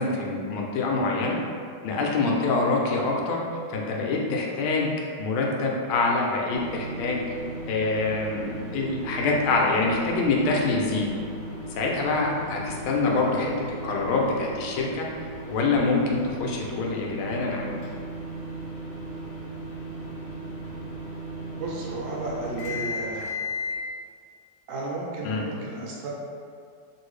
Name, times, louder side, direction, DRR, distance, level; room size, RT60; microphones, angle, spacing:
voice 1, 0.0-1.4 1.8-3.4 3.7-4.9 5.2-7.2 7.7-11.1 11.7-15.1 15.5-17.7 25.2-25.4, left 3 dB, 85° left, -1 dB, 1.4 m, -25 dB
sound 1, 6.5-23.8, equal, 65° left, 1.0 m, -36 dB
voice 2, 21.6-23.3 24.7-26.1, right 2 dB, 75° right, -4 dB, 1.4 m, -33 dB
3.2 x 2.6 x 3.1 m, 2.2 s
omnidirectional pair, 2.2 m